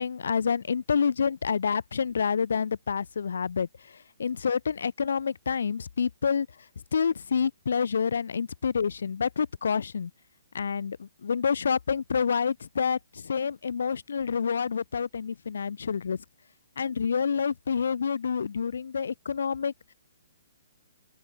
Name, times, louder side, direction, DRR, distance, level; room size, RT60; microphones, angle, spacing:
voice 1, 0.0-3.7 4.2-6.5 6.9-10.1 10.5-16.2 16.8-19.7, left 6 dB, 75° left, 6.9 m, -28 dB
open air
hypercardioid pair, 155°, 0 cm